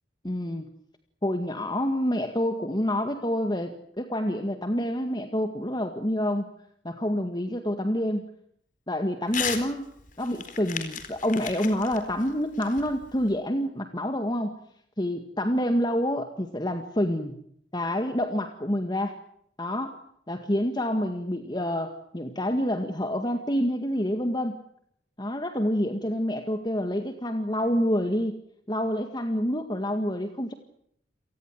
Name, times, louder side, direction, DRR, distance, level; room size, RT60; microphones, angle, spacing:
voice 1, 0.2-0.7 1.2-6.5 6.8-8.3 8.9-9.9 10.2-14.5 15.0-17.4 17.7-19.1 19.6-20.0 20.3-24.6 25.2-28.4 28.7-30.5, equal, 25° left, 7 dB, 1.9 m, -27 dB
Crumpling crinkling / Tearing, 9.3-9.7 10.0-13.3, left 7 dB, 45° left, 4.2 m, -35 dB
29.0 x 19.0 x 7.7 m, 0.69 s
head